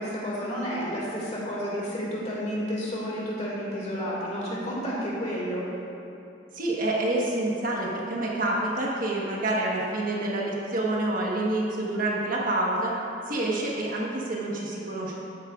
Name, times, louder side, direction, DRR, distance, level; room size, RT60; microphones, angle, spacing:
voice 1, 0.0-5.6, equal, 35° left, -6 dB, 2.4 m, -31 dB
voice 2, 6.5-12.9 13.3-15.2, right 2 dB, 45° right, -3 dB, 1.3 m, -27 dB
13.0 x 9.8 x 2.5 m, 2.7 s
head